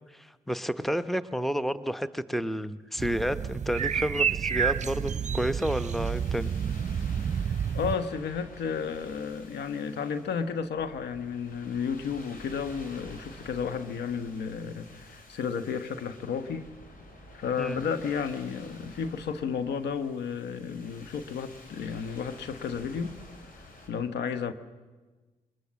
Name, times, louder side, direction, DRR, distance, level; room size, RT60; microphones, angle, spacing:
voice 1, 0.1-6.5 17.6-17.8, equal, ahead, 14 dB, 0.9 m, -30 dB
sound 1, 3.0-8.0, right 7 dB, 40° right, 0.8 m, -29 dB
sound 2, 4.6-23.9, left 1 dB, 55° left, 5.4 m, -50 dB
voice 2, 7.7-16.7 17.3-23.2 23.6-24.5, left 6 dB, 75° left, 11 dB, 1.2 m, -32 dB
22.5 x 20.0 x 7.5 m, 1.3 s
supercardioid pair, 50°, 18 cm